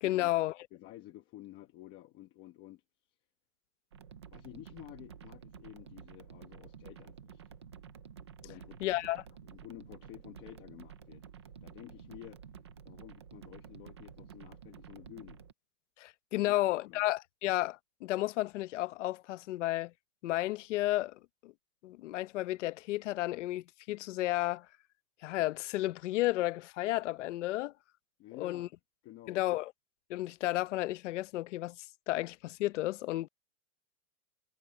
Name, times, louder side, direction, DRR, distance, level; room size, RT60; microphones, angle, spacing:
voice 1, 0.0-0.5 8.8-9.2 16.0-19.9 20.2-21.5 21.8-24.7 25.2-27.7 28.4-28.7 29.3-29.7 30.1-33.3, left 16 dB, 50° left, 0.8 m, -32 dB
voice 2, 0.7-2.8 4.3-7.4 8.4-8.9 9.4-11.2 11.6-12.4 12.8-15.4 16.4-16.6 16.8-17.0 28.2-28.7 29.0-29.4, left 15 dB, 25° left, 1.2 m, -51 dB
sound 1, 3.9-15.5, right 7 dB, 20° right, 0.3 m, -51 dB
supercardioid pair, 175°, 46 cm